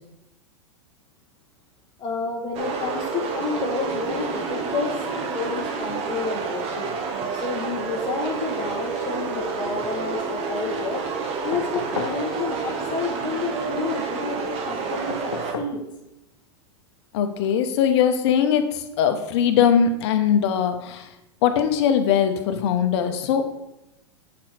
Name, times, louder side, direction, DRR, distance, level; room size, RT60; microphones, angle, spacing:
voice 1, 2.0-6.9 7.3-11.0 11.4-15.8, left 4 dB, 30° left, -2 dB, 1.2 m, -30 dB
sound 1, 2.5-15.5, right 5 dB, 40° right, 1.3 m, -29 dB
sound 2, 11.5-12.2 15.1-15.8 17.4-17.5, left 5 dB, 90° left, 0.8 m, -34 dB
voice 2, 17.1-21.1 21.4-23.4, left 8 dB, 60° left, 7 dB, 1.0 m, -21 dB
7.4 x 5.2 x 4.3 m, 0.91 s
hypercardioid pair, 105°, 16 cm